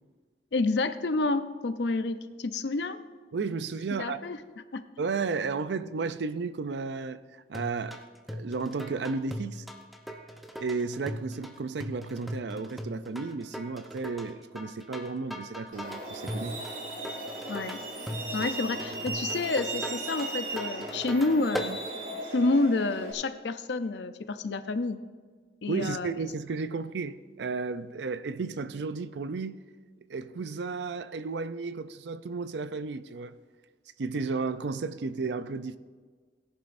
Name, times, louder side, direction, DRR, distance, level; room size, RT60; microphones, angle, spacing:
voice 1, 0.5-3.0 4.0-4.4 4.7-4.8 17.5-17.8 18.3-21.8 22.3-25.0 25.6-26.1, left 3 dB, 70° left, 0.6 m, -29 dB
voice 2, 3.3-4.2 5.0-8.0 8.3-9.6 10.6-16.6 18.4-18.5 25.7-29.6 30.1-33.4 34.0-35.8, right 4 dB, 75° right, 0.5 m, -33 dB
sound 1, 7.5-21.7, equal, ahead, 0.7 m, -39 dB
Truck, 15.7-23.1, right 2 dB, 45° right, 2.4 m, -37 dB
17.5 x 11.0 x 2.6 m
head